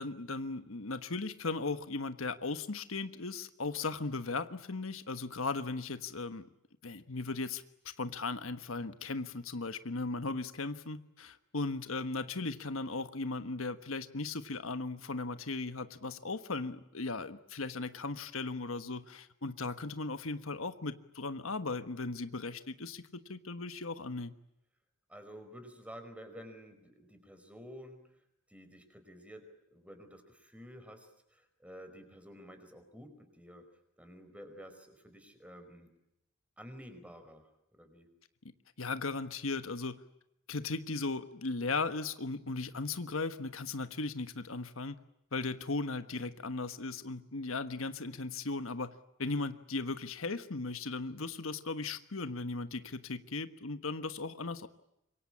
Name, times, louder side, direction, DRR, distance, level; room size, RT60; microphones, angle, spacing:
voice 1, 0.0-6.5 6.8-24.3 38.8-40.0 40.5-45.0 45.3-48.9 49.2-54.7, left 3 dB, 75° left, 10 dB, 1.3 m, -37 dB
voice 2, 25.1-28.0 28.5-33.6 34.0-35.9 36.6-38.1, equal, 5° right, 8 dB, 4.8 m, -51 dB
26.5 x 24.0 x 8.8 m, 0.83 s
head